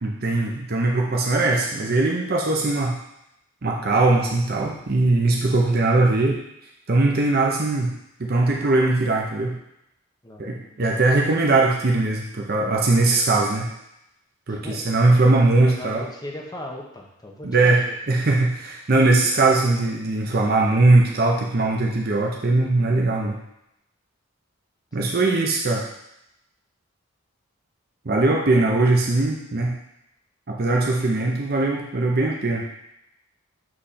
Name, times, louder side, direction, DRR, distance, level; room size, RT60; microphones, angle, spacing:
voice 1, 0.0-3.0 3.6-6.4 6.9-7.9 8.2-9.5 10.4-13.7 14.5-16.0 17.4-23.4 24.9-25.8 28.1-29.7 30.5-32.8, right 2 dB, 45° right, -1 dB, 0.7 m, -20 dB
voice 2, 10.2-10.8 14.5-14.8 15.5-18.2 25.0-25.4, left 1 dB, 20° left, -1 dB, 0.9 m, -38 dB
7.6 x 3.3 x 4.2 m, 0.82 s
head